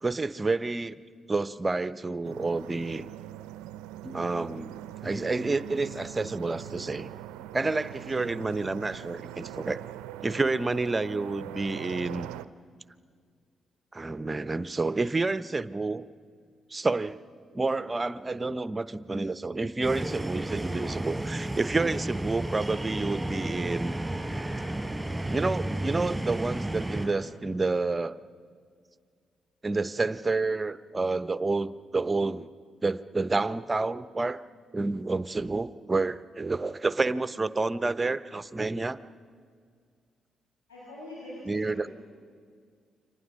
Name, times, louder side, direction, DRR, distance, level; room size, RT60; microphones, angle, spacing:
voice 1, 0.0-1.0 1.3-3.0 4.0-4.7 5.0-7.1 7.5-9.8 10.2-12.3 13.9-16.0 16.7-17.2 17.5-24.0 25.3-28.2 29.6-32.5 32.8-34.4 34.7-39.0 41.5-41.9, right 3 dB, 30° right, 15 dB, 0.9 m, -29 dB
sound 1, 2.2-12.4, right 13 dB, 80° right, 0.6 m, -42 dB
sound 2, 19.8-27.1, right 1 dB, 10° right, 5.1 m, -32 dB
voice 2, 40.7-41.9, left 1 dB, 90° left, -8 dB, 7.3 m, -43 dB
29.0 x 25.0 x 6.4 m, 2.1 s
hypercardioid pair, 40°, 0 cm